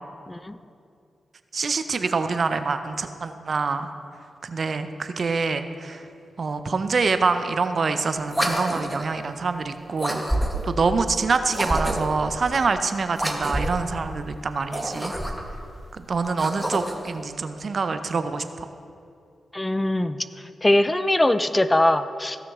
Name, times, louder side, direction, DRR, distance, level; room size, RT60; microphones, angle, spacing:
voice 1, 0.3-0.6 19.5-20.2 20.6-22.4, left 1 dB, 20° left, 12 dB, 0.5 m, -21 dB
voice 2, 1.5-3.9 4.4-6.0 6.4-10.2 10.6-15.1 15.9-18.7, right 4 dB, 60° right, 9 dB, 0.6 m, -25 dB
sound 1, 8.3-9.1 10.0-10.8 11.5-12.2 13.1-13.9 14.6-15.6 16.2-17.1, right 1 dB, ahead, 1.4 m, -27 dB
16.0 x 5.9 x 3.6 m, 2.5 s
supercardioid pair, 40°, 0 cm